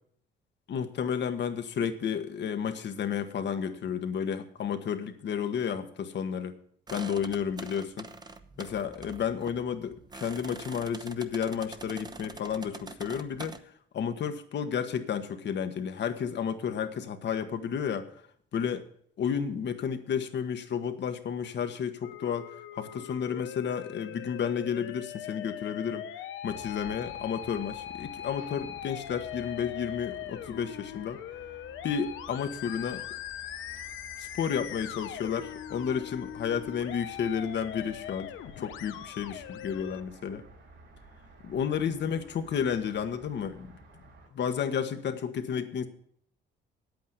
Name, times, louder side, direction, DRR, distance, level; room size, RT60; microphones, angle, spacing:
voice 1, 0.7-6.6 6.9-8.1 8.6-18.2 18.5-18.9 19.2-26.1 26.4-31.2 31.8-33.0 34.2-40.5 41.4-43.7 44.3-45.9, left 7 dB, 65° left, 8 dB, 1.3 m, -32 dB
sound 1, 6.9-13.6, right 3 dB, 20° right, 0.9 m, -45 dB
Musical instrument, 22.0-40.0, left 11 dB, 90° left, 0.8 m, -41 dB
sound 2, 26.4-44.3, right 2 dB, 80° right, 4.6 m, -54 dB
9.3 x 8.5 x 8.3 m, 0.65 s
cardioid pair, 90°, 20 cm